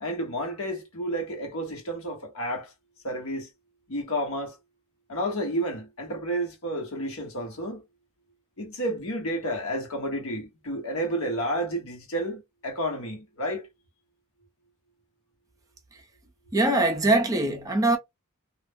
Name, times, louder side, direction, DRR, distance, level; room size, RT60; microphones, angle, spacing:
voice 1, 0.0-2.7 3.0-3.5 3.9-4.6 5.1-7.8 8.6-13.6, right 1 dB, 70° left, 1.1 m, -31 dB
voice 2, 16.5-18.0, right 2 dB, 15° right, 0.5 m, -22 dB
2.4 x 2.0 x 3.5 m
head